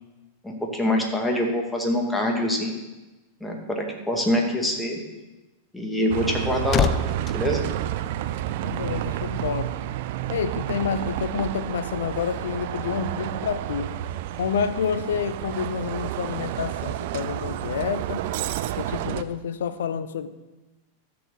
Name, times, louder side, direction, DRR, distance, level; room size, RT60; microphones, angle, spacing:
voice 1, 0.4-2.8 3.4-5.0 5.7-6.9 7.3-7.6, left 1 dB, 5° left, 0 dB, 2.2 m, -25 dB
sound 1, 6.0-8.7 8.9-9.2, left 10 dB, 30° left, 0.4 m, -29 dB
Bus, 6.1-19.2, right 12 dB, 50° right, 0.5 m, -30 dB
voice 2, 8.6-9.7 10.3-14.0 14.4-18.3 18.8-20.3, left 7 dB, 60° left, 13 dB, 0.7 m, -29 dB
13.5 x 6.9 x 5.4 m, 1.1 s
figure-of-eight pair, 90°, 0 cm